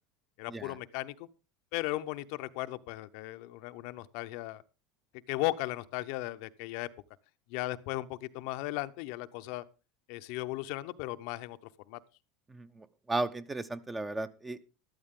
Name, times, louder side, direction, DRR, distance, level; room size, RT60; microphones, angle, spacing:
voice 1, 0.4-1.3 1.7-4.6 5.3-6.9 7.5-9.6 10.1-11.6 11.9-12.0, left 18 dB, 65° left, 11 dB, 0.7 m, -36 dB
voice 2, 12.5-14.6, right 2 dB, 15° right, 14 dB, 0.8 m, -35 dB
12.5 x 12.0 x 3.7 m, 0.32 s
supercardioid pair, 110°, 0 cm